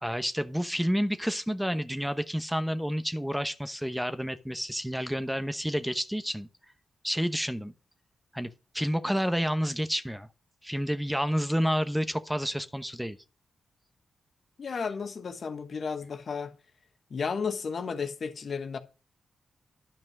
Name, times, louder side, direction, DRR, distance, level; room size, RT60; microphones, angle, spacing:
voice 1, 0.0-6.5 7.0-7.7 8.3-10.3 10.6-13.2, equal, 5° right, 1.0 m, -29 dB
voice 2, 14.6-16.5 17.1-18.8, left 5 dB, 65° left, 1.4 m, -33 dB
10.5 x 5.4 x 6.0 m
supercardioid pair, 45°, 0 cm